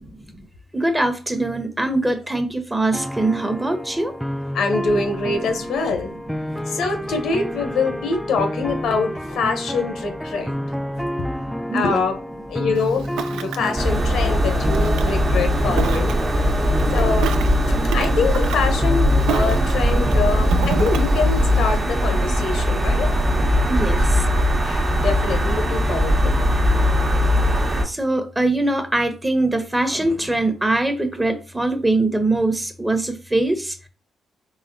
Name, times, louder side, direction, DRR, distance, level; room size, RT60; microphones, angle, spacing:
voice 1, 0.7-4.1 6.0-6.1 10.4-10.5 11.0-12.0 22.2-23.4 23.7-24.3 25.9-26.9 27.3-27.4 27.8-33.9, right 2 dB, 15° right, 8 dB, 0.9 m, -24 dB
sound 1, 2.9-20.6, equal, ahead, 0.3 m, -30 dB
voice 2, 4.5-6.1 6.7-10.5 11.7-12.2 12.5-13.1 13.3-16.6 16.9-17.3 17.9-23.2 24.6-26.5, left 4 dB, 80° left, 6 dB, 0.8 m, -24 dB
Ocean, 12.7-21.8, right 8 dB, 85° right, 0.4 m, -32 dB
sound 2, 13.8-27.8, equal, 40° right, 1.0 m, -19 dB
4.0 x 3.4 x 2.7 m, 0.34 s
supercardioid pair, 55°, 0 cm